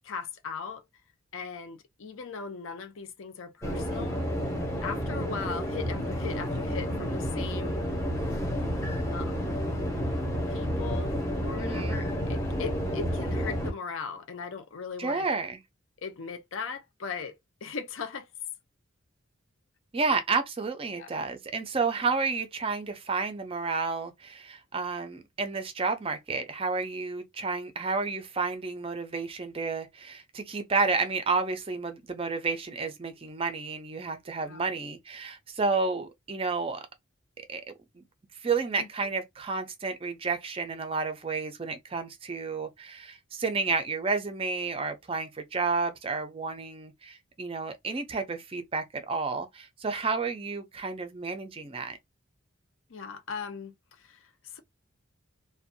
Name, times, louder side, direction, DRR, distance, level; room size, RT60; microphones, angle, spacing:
voice 1, 0.0-0.9 1.3-4.3 4.8-8.0 9.1-9.5 10.5-11.1 11.4-15.3 16.0-18.3 20.9-21.2 34.4-34.7 38.8-39.1 52.9-54.6, left 5 dB, 65° left, 0.5 m, -39 dB
sound 1, 3.6-13.7, equal, 15° left, 0.7 m, -30 dB
voice 2, 11.6-12.0 15.0-15.6 19.9-36.9 37.5-37.6 38.0-38.1 38.4-52.0, right 4 dB, 25° right, 0.4 m, -31 dB
2.6 x 2.2 x 2.6 m
head